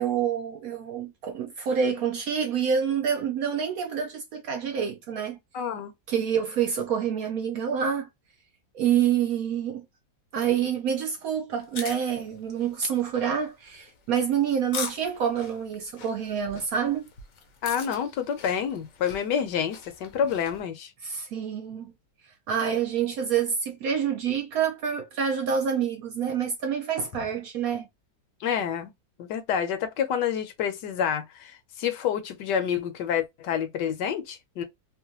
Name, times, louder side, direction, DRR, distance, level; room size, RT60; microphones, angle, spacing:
voice 1, 0.0-5.4 6.1-8.1 8.7-9.8 10.3-17.0 21.0-21.9 22.5-27.9, right 7 dB, 70° right, 0.8 m, -27 dB
voice 2, 5.5-5.9 17.6-20.9 28.4-28.9 29.2-34.6, left 8 dB, 75° left, 1.2 m, -28 dB
sound 1, 11.5-20.6, left 5 dB, 60° left, 0.8 m, -42 dB
3.0 x 2.2 x 2.8 m
omnidirectional pair, 1.9 m